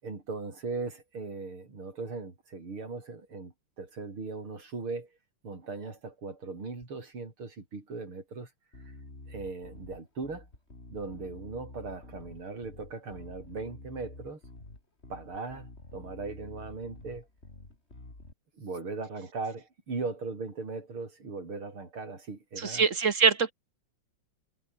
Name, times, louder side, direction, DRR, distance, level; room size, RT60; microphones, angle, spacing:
voice 1, 0.0-5.1 5.4-8.5 9.3-10.5 10.9-14.4 15.1-17.3 18.6-22.9, right 3 dB, 75° right, 6.1 m, -38 dB
Bass guitar, 8.7-18.3, left 2 dB, 30° left, 5.2 m, -49 dB
voice 2, 22.6-23.5, right 5 dB, 45° right, 1.3 m, -24 dB
omnidirectional pair, 2.4 m